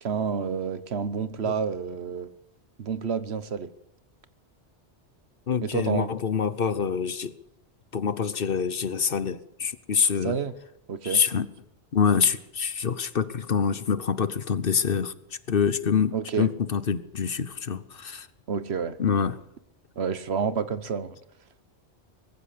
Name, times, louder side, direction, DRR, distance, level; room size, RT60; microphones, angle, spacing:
voice 1, 0.0-2.3 2.8-3.7 5.6-6.1 10.2-10.5 10.9-11.2 16.1-16.5 18.5-19.0 20.0-21.2, right 6 dB, 65° right, 14 dB, 1.3 m, -29 dB
voice 2, 5.5-7.4 7.9-10.4 11.0-11.5 11.9-15.1 15.5-18.3 19.0-19.4, left 6 dB, 55° left, 15 dB, 1.1 m, -26 dB
20.5 x 15.0 x 8.5 m, 0.79 s
omnidirectional pair, 1.2 m